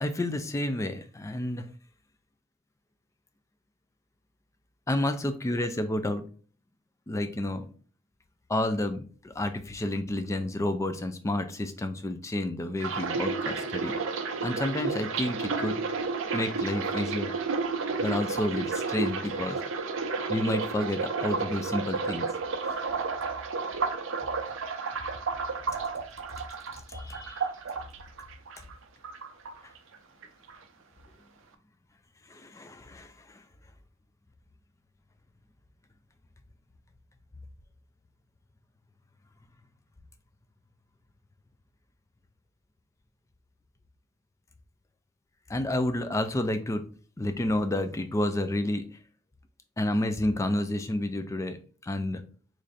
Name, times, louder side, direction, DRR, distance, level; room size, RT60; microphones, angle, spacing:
voice 1, 0.0-1.7 4.9-6.2 7.1-7.7 8.5-13.9 14.4-15.9 16.3-17.3 18.0-19.6 20.3-22.3 26.9-27.4 32.3-33.4 45.5-46.8 47.2-48.8 49.8-51.6 51.8-52.2, left 1 dB, 15° left, 9 dB, 0.3 m, -30 dB
sound 1, 12.8-28.8 29.0-30.0 30.2-30.6, right 4 dB, 65° right, 0.5 m, -32 dB
3.2 x 2.5 x 3.8 m, 0.42 s
head